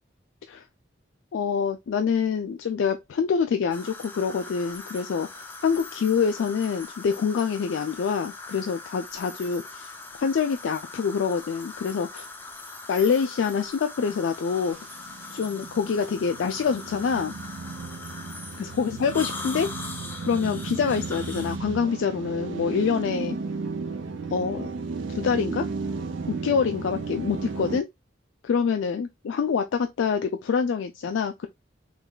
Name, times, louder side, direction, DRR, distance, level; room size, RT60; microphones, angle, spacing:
voice 1, 1.3-9.9 10.2-12.3 12.9-14.8 15.3-17.3 18.6-19.9 20.2-23.4 24.3-24.7 25.1-25.7 26.3-27.9 28.4-31.5, left 6 dB, 80° left, 0.3 m, -26 dB
sound 1, 3.7-21.6, left 3 dB, 10° left, 0.4 m, -41 dB
sound 2, 14.5-27.8, right 4 dB, 75° right, 0.4 m, -34 dB
3.8 x 3.2 x 2.2 m
head